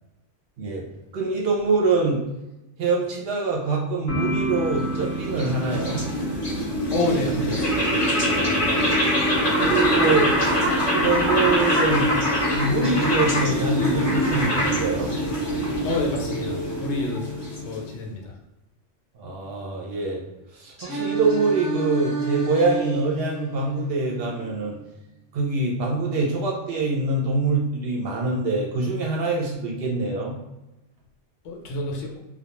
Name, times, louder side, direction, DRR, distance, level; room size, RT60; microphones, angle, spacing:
voice 1, 1.1-2.2 2.8-6.0 8.2-8.9 9.6-10.3 10.9-12.1 12.5-15.2 19.2-20.2 20.5-24.8 25.3-30.3, right 3 dB, 60° right, -2 dB, 0.7 m, -24 dB
sound 1, 4.1-13.6, equal, 65° left, 0.7 m, -32 dB
sound 2, 4.6-18.0, equal, 30° left, 0.5 m, -24 dB
voice 2, 6.6-7.6 15.8-17.3 17.6-18.3 31.4-32.2, left 2 dB, 90° left, 0 dB, 1.0 m, -28 dB
Singing, 12.8-16.8 20.8-24.8, right 3 dB, 15° right, 0.8 m, -32 dB
2.2 x 2.2 x 2.9 m, 0.98 s
omnidirectional pair, 1.3 m